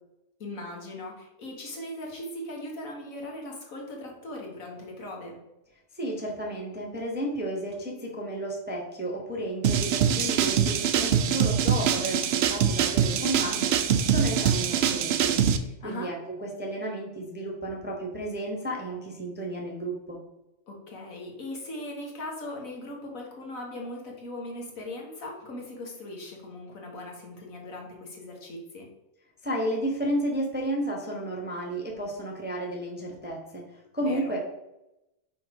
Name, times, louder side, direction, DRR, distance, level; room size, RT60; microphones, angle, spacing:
voice 1, 0.4-5.4 15.8-16.1 20.7-28.9 34.1-34.2, left 1 dB, 65° left, 0 dB, 1.8 m, -39 dB
voice 2, 5.9-20.2 29.4-34.4, right 1 dB, 10° right, -1 dB, 0.9 m, -32 dB
sound 1, 9.6-15.6, right 8 dB, 65° right, 0.6 m, -24 dB
5.6 x 4.4 x 5.1 m, 0.92 s
omnidirectional pair, 1.6 m